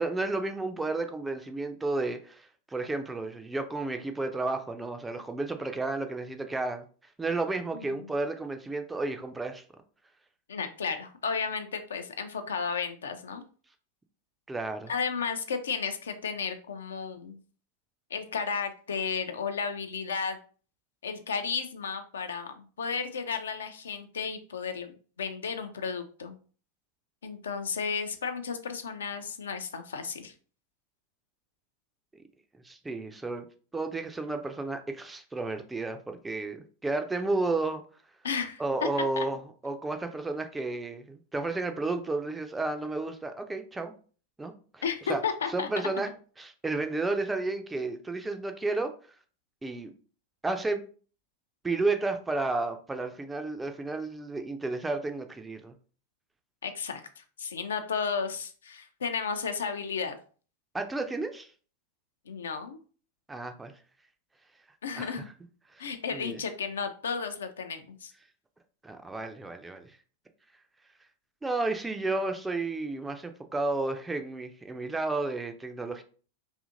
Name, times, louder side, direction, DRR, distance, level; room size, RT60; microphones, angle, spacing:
voice 1, 0.0-6.8 7.2-9.6 14.5-14.9 32.6-33.5 33.7-37.8 38.6-43.9 44.4-44.8 45.1-45.2 45.5-46.1 46.4-48.9 49.6-49.9 50.4-50.8 51.6-55.7 60.7-61.5 63.3-63.7 65.0-65.2 65.7-66.4 68.8-70.0 71.4-76.0, right 3 dB, 10° right, 0.3 m, -32 dB
voice 2, 7.7-8.1 10.5-13.4 14.9-17.4 18.1-20.4 21.0-26.4 27.2-30.3 38.2-38.6 39.2-39.3 44.8-45.7 56.6-60.2 62.3-62.8 64.8-65.3 65.8-68.1, left 5 dB, 65° left, 0.3 m, -33 dB
2.7 x 2.5 x 2.5 m
figure-of-eight pair, 90°, 0 cm